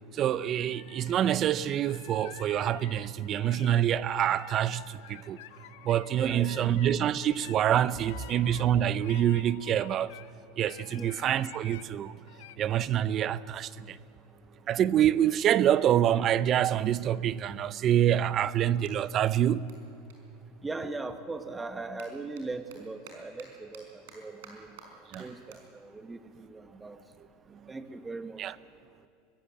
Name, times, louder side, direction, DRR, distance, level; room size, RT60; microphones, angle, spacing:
voice 1, 0.1-5.4 5.8-10.1 10.6-12.1 12.6-14.0 14.7-19.7 25.1-25.3 28.4-28.6, right 10 dB, 35° right, 0.6 m, -26 dB
sound 1, 0.7-10.3 10.7-11.9 12.3-12.6, left 13 dB, 80° left, 1.0 m, -50 dB
voice 2, 6.2-6.7 10.9-11.1 20.6-24.7 25.2-27.0 27.7-28.4, right 3 dB, 10° right, 1.3 m, -39 dB
Clapping, 18.3-21.1 21.4-28.0, right 6 dB, 85° right, 4.8 m, -56 dB
24.0 x 17.5 x 7.6 m
supercardioid pair, 140°, 0 cm